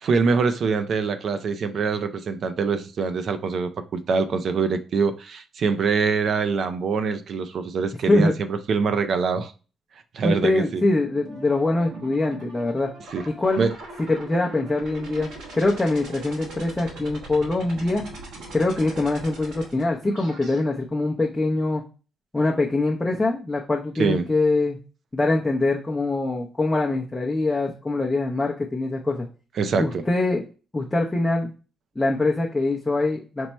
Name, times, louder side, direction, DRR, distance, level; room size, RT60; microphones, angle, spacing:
voice 1, 0.0-9.5 10.1-10.8 13.1-13.3 13.6-13.7 24.0-24.3 29.6-30.0, right 5 dB, 60° right, 0.4 m, -24 dB
voice 2, 10.2-12.9 13.3-13.7 14.0-18.0 18.5-21.8 22.3-24.8 25.1-29.3 29.7-30.4 30.7-31.5 32.0-33.5, left 2 dB, 15° left, 0.6 m, -23 dB
sound 1, 11.3-20.6, right 3 dB, 85° right, 1.0 m, -40 dB
4.5 x 2.1 x 4.1 m
cardioid pair, 90°, 0 cm